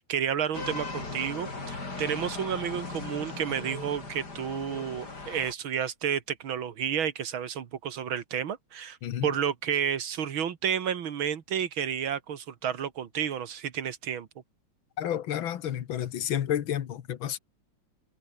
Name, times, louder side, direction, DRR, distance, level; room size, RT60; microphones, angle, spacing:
voice 1, 0.0-9.0 9.2-14.3, right 8 dB, 90° right, 2.4 m, -31 dB
sound 1, 0.5-5.5, left 3 dB, 55° left, 5.0 m, -38 dB
voice 2, 9.0-9.3 15.0-17.4, left 10 dB, 80° left, 2.0 m, -30 dB
omnidirectional pair, 2.1 m